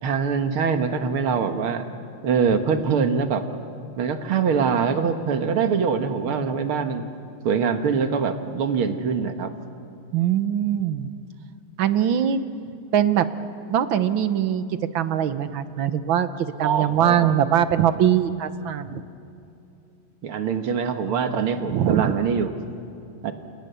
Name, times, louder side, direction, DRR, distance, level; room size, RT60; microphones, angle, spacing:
voice 1, 0.0-1.9 2.2-3.6 4.0-7.1 7.4-9.5 16.6-17.3 20.2-22.5 23.2-23.3, right 6 dB, 85° right, 7 dB, 2.4 m, -23 dB
voice 2, 10.1-11.1 11.8-12.4 12.9-13.3 13.7-14.6 14.9-19.0 21.7-22.1, right 10 dB, 70° right, 12 dB, 1.8 m, -22 dB
29.0 x 28.0 x 6.9 m, 2.7 s
omnidirectional pair, 2.3 m